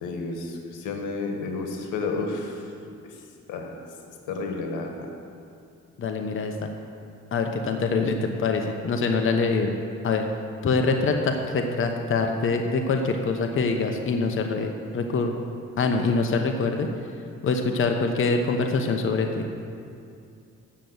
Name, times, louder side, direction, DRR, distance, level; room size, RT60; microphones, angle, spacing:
voice 1, 0.0-2.6 3.1-3.2 3.5-3.7 4.3-4.9, left 3 dB, 85° left, 2 dB, 1.5 m, -31 dB
voice 2, 6.0-6.5 7.3-9.7 10.0-10.2 10.6-15.3 15.8-16.9 17.4-19.5, left 4 dB, 45° left, 4 dB, 0.9 m, -24 dB
8.4 x 6.8 x 7.8 m, 2.5 s
cardioid pair, 90°, 30 cm